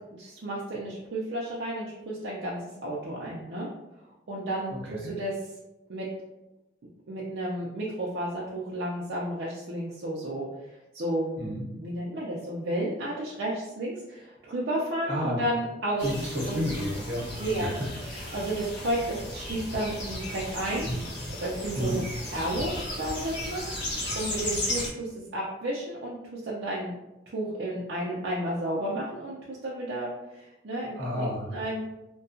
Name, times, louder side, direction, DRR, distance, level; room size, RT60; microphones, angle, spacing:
voice 1, 0.1-3.7 4.3-5.3 5.9-6.1 7.1-10.5 10.9-16.1 16.5-16.6 17.4-17.7 18.1-20.9 21.4-22.7 23.0-26.9 27.3-31.3 31.5-31.8, right 1 dB, 70° right, -6 dB, 0.5 m, -32 dB
voice 2, 15.1-15.4 16.0-17.7 21.8-22.0 31.0-31.5, left 1 dB, 85° right, -2 dB, 0.9 m, -31 dB
sound 1, 16.0-24.9, left 1 dB, 65° left, 0.9 m, -35 dB
2.7 x 2.2 x 2.6 m, 0.95 s
head